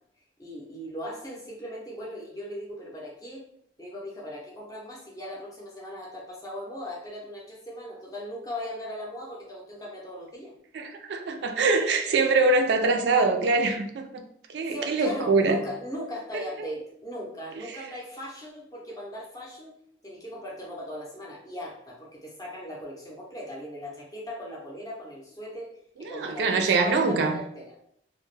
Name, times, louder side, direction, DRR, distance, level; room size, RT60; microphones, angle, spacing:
voice 1, 0.4-3.5 3.8-10.5 14.7-19.7 20.0-27.8, equal, 20° left, -4 dB, 0.6 m, -38 dB
voice 2, 10.7-14.2 14.5-15.6 26.0-27.4, right 3 dB, 75° right, 4 dB, 0.3 m, -23 dB
2.2 x 2.0 x 3.1 m, 0.70 s
head